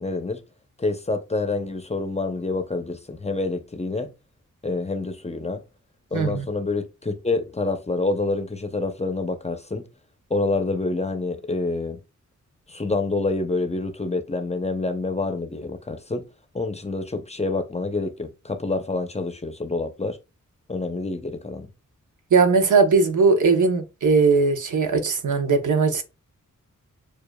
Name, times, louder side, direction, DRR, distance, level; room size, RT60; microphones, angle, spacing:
voice 1, 0.0-0.4 0.8-4.1 4.6-5.6 6.1-9.9 10.3-12.0 12.7-16.2 16.5-20.2 20.7-21.7, left 3 dB, 20° left, 0.6 m, -27 dB
voice 2, 6.1-6.4 22.3-26.0, right 4 dB, 75° right, 0.8 m, -19 dB
6.8 x 2.4 x 2.2 m
wide cardioid pair, 90°, 31 cm